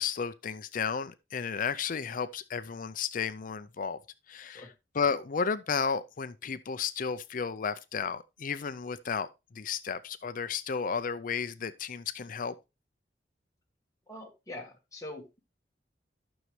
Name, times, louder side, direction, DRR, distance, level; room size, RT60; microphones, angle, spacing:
voice 1, 0.0-4.0 4.3-4.6 5.0-9.3 9.6-12.5, left 6 dB, 50° left, 0.5 m, -33 dB
voice 2, 14.1-15.4, left 1 dB, 20° left, 1.5 m, -44 dB
12.5 x 6.3 x 3.2 m
head